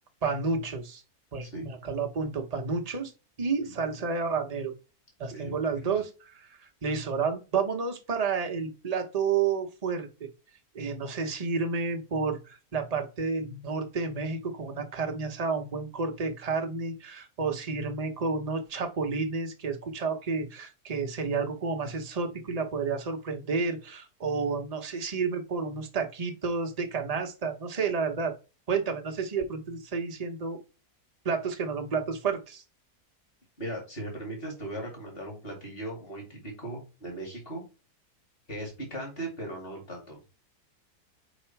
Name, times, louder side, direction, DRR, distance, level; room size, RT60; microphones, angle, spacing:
voice 1, 0.2-1.0 1.3-3.1 3.4-4.7 5.2-10.3 10.7-28.3 28.7-30.6 31.2-32.6, right 5 dB, 30° right, 4 dB, 0.9 m, -30 dB
voice 2, 3.6-4.0 5.3-6.0 33.6-37.6 38.5-40.2, right 1 dB, 40° left, 0 dB, 2.9 m, -38 dB
5.0 x 4.9 x 4.5 m, 0.31 s
omnidirectional pair, 1.6 m